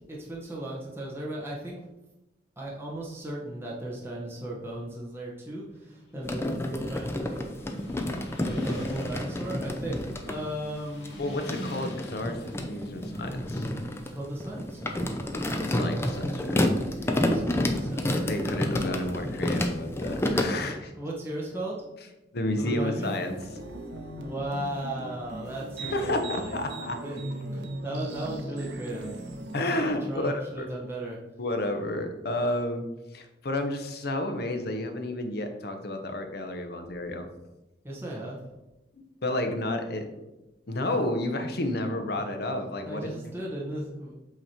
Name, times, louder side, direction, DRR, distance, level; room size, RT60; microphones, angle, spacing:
voice 1, 0.1-1.8 2.6-7.5 8.4-11.2 14.1-15.1 17.2-18.3 21.0-21.8 22.6-23.1 24.2-26.6 27.0-27.2 27.5-29.1 30.1-31.2 37.8-38.4 42.9-44.1, right 1 dB, 15° right, -4 dB, 1.1 m, -36 dB
Motorcycle, 5.7-15.5, equal, 80° left, 1.7 m, -45 dB
sound 1, 6.2-10.4 11.0-20.4, left 1 dB, 15° left, 0.5 m, -29 dB
voice 2, 11.2-13.7 15.6-16.7 17.1-17.3 18.2-20.9 22.3-23.4 25.8-27.0 29.5-30.7 31.4-32.8 33.1-37.3 39.2-40.1 40.7-43.1, left 1 dB, 60° left, 6 dB, 0.8 m, -31 dB
sound 2, 23.0-30.0, right 1 dB, 70° right, 0.8 m, -38 dB
7.9 x 3.1 x 4.3 m, 1.0 s
head